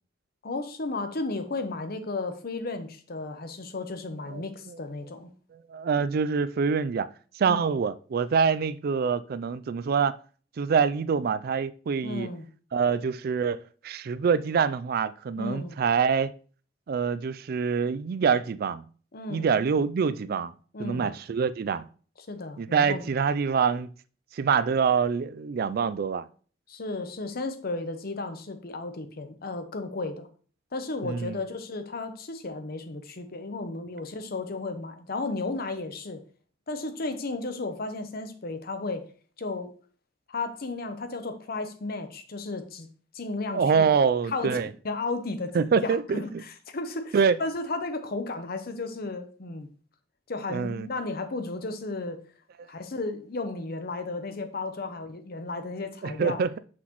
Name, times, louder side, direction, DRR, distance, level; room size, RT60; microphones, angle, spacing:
voice 1, 0.4-5.3 7.5-7.6 12.0-12.5 15.4-15.8 19.1-19.5 20.7-21.1 22.3-23.1 26.7-30.3 30.7-36.2 36.7-39.0 39.4-39.7 40.3-42.9 43.1-43.9 44.3-44.5 44.8-45.6 45.8-49.7 50.3-52.2 52.7-56.4, left 3 dB, 55° left, 0.8 m, -34 dB
voice 2, 4.3-4.8 5.7-7.1 7.4-10.1 10.6-12.3 12.7-16.3 16.9-18.8 19.3-20.5 20.8-21.8 22.6-23.9 24.3-26.3 31.0-31.4 43.5-44.7 45.5-46.4 47.1-47.4 50.5-50.9 56.0-56.6, right 6 dB, 55° right, 0.4 m, -25 dB
6.0 x 5.9 x 3.0 m
head